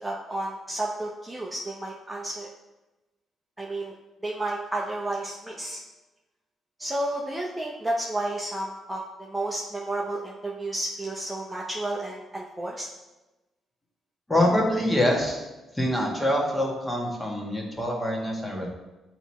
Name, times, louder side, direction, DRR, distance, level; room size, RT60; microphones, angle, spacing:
voice 1, 0.0-2.5 3.6-3.9 4.2-5.8 6.8-12.9, right 1 dB, 10° right, -3 dB, 0.7 m, -31 dB
voice 2, 14.3-15.4 15.7-18.7, left 1 dB, 15° left, -1 dB, 1.5 m, -25 dB
8.0 x 3.0 x 4.2 m, 1.1 s
cardioid pair, 90°, 0 cm